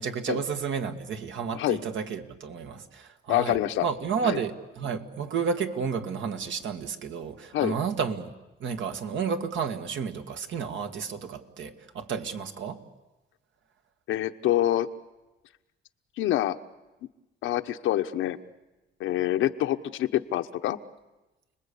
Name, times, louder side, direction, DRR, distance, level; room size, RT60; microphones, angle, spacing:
voice 1, 0.0-8.3 8.6-12.8, right 6 dB, 70° right, 6 dB, 2.0 m, -31 dB
voice 2, 3.3-3.8 4.2-4.4 7.5-7.8 14.1-14.9 16.2-16.5 17.4-18.4 19.0-20.8, left 13 dB, 90° left, 8 dB, 1.1 m, -26 dB
29.5 x 20.5 x 8.5 m, 1.1 s
cardioid pair, 90°, 20 cm